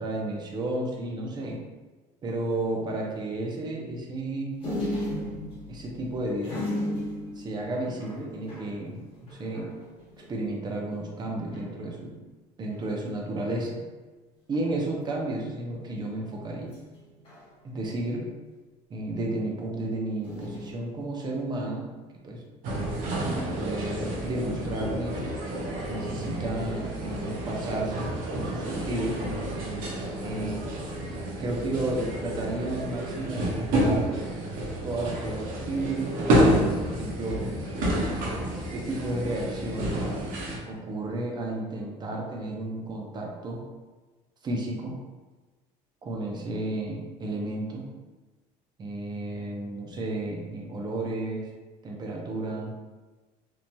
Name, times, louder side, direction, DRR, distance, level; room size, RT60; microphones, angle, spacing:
voice 1, 0.0-1.6 2.2-4.5 5.7-6.6 7.4-9.7 10.3-12.1 12.6-13.8 14.5-16.7 17.6-18.3 18.9-21.9 22.2-22.4 23.3-25.3 25.9-29.2 30.2-30.6 31.4-34.1 34.8-37.5 38.7-40.0 40.7-43.6 44.4-44.9 46.0-47.8 48.8-51.5 51.8-52.8, right 2 dB, 30° right, -1 dB, 0.6 m, -32 dB
sound 1, 4.6-10.6 11.0-11.1 11.3-11.7 12.6-13.2 14.6-15.1 16.7-18.0 20.2-20.7, left 1 dB, 35° left, 1.1 m, -36 dB
sound 2, 22.6-40.6, right 1 dB, 65° right, 0.8 m, -29 dB
3.0 x 2.6 x 2.2 m, 1.3 s
cardioid pair, 130°, 15 cm